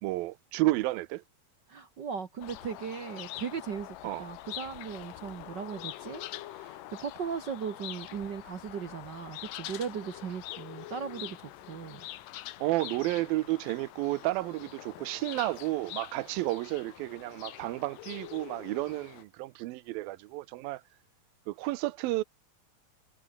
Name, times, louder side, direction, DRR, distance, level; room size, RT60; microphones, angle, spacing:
voice 1, 0.0-1.2 4.0-4.2 12.6-20.8 21.5-22.2, right 18 dB, 90° right, 2.6 m, -31 dB
voice 2, 1.7-12.1, right 7 dB, 70° right, 1.0 m, -38 dB
sound 1, 2.4-19.2, left 15 dB, 75° left, 2.6 m, -45 dB
omnidirectional pair, 4.0 m